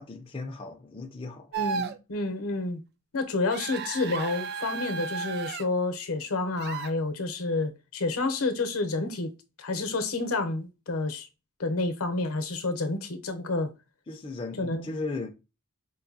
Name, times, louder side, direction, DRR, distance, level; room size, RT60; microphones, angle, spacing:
voice 1, 0.0-1.5 14.1-15.3, left 3 dB, 25° left, 0.4 m, -36 dB
voice 2, 1.5-2.8 3.1-9.3 9.6-11.3 11.6-13.7 14.6-14.9, left 3 dB, 70° left, 0.8 m, -29 dB
sound 1, 1.5-2.0 3.5-5.6 6.6-6.9, right 6 dB, 45° right, 0.3 m, -34 dB
4.6 x 2.7 x 2.6 m
head